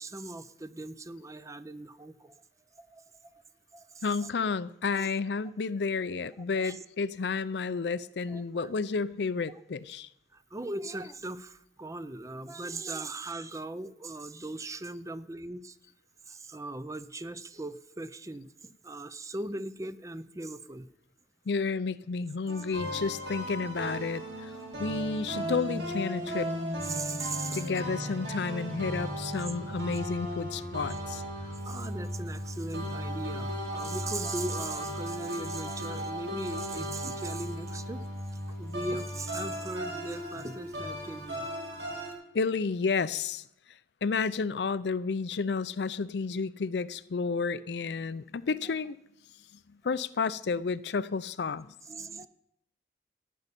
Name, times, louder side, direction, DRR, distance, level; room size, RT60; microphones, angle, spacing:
voice 1, 0.0-2.4 2.8-3.0 3.3-3.4 3.7-4.3 5.0-5.1 6.5-6.8 8.3-8.7 10.3-15.8 16.3-20.9 26.8-27.6 31.4-38.0 38.6-41.4 48.5-48.6 51.9-52.3, right 2 dB, 20° right, 14 dB, 0.5 m, -39 dB
voice 2, 4.0-10.1 21.5-26.5 27.5-31.2 42.3-43.4 44.0-49.0 49.8-51.7 52.0-52.3, left 4 dB, 70° left, 16 dB, 0.5 m, -31 dB
sound 1, 22.5-42.1, equal, 85° right, 4.5 m, -36 dB
15.0 x 5.5 x 9.9 m, 0.79 s
head